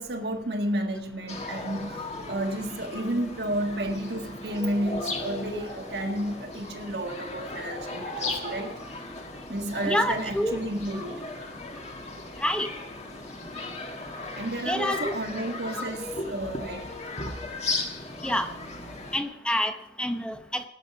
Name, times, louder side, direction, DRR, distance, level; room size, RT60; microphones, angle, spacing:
voice 1, 0.0-8.7 9.5-11.3 14.3-16.9 17.9-18.1, right 1 dB, 65° right, 1.5 m, -31 dB
sound 1, 1.3-19.2, left 2 dB, 35° left, 1.7 m, -36 dB
voice 2, 9.8-10.6 12.4-12.7 14.6-15.2 18.2-18.5 19.1-19.7 20.0-20.6, left 1 dB, 5° left, 0.9 m, -27 dB
19.0 x 6.5 x 5.9 m
head